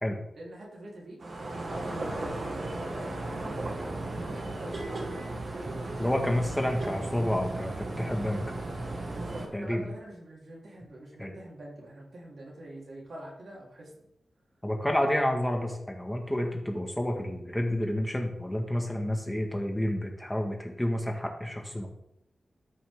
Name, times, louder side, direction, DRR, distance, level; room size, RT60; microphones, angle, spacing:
voice 1, 0.4-1.2 1.6-3.8 4.2-5.0 5.5-6.4 9.1-14.1, right 1 dB, 70° right, -4 dB, 3.6 m, -44 dB
sound 1, 1.2-9.5, right 2 dB, 55° right, 1.8 m, -35 dB
voice 2, 6.0-8.4 9.5-9.8 11.2-11.3 14.6-21.9, left 1 dB, 10° left, 2 dB, 1.7 m, -29 dB
13.5 x 5.9 x 3.7 m, 0.79 s
wide cardioid pair, 130°, 0 cm